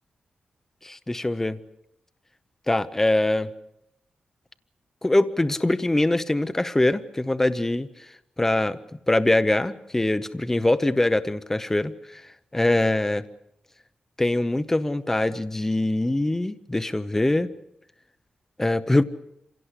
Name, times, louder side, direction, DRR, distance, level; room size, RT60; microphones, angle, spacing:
voice 1, 0.8-1.6 2.7-3.5 5.0-7.9 8.4-8.8 9.1-12.2 12.5-13.2 14.2-17.5 18.6-19.0, left 1 dB, 15° left, 12 dB, 0.8 m, -23 dB
26.0 x 17.0 x 8.3 m, 0.80 s
wide cardioid pair, 115°, 3 cm